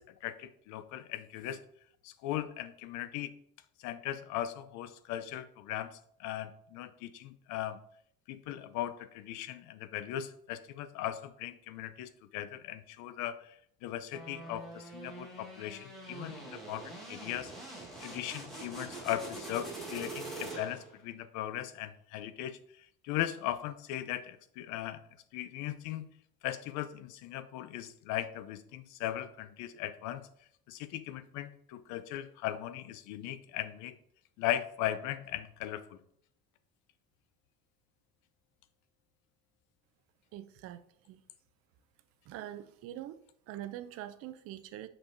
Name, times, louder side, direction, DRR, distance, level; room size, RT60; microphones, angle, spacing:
voice 1, 0.0-1.6 2.0-3.3 3.8-5.9 6.2-7.8 8.3-13.4 13.8-17.5 18.0-22.6 23.0-25.0 25.3-26.1 26.4-30.2 30.7-33.9 34.4-36.0, left 12 dB, 80° left, 13 dB, 0.6 m, -38 dB
sound 1, 14.1-21.0, right 2 dB, ahead, 1.4 m, -44 dB
voice 2, 40.3-41.2 42.3-43.2 43.5-44.9, right 12 dB, 50° right, 12 dB, 0.4 m, -44 dB
6.5 x 5.9 x 2.6 m, 0.66 s
cardioid pair, 175°, 29 cm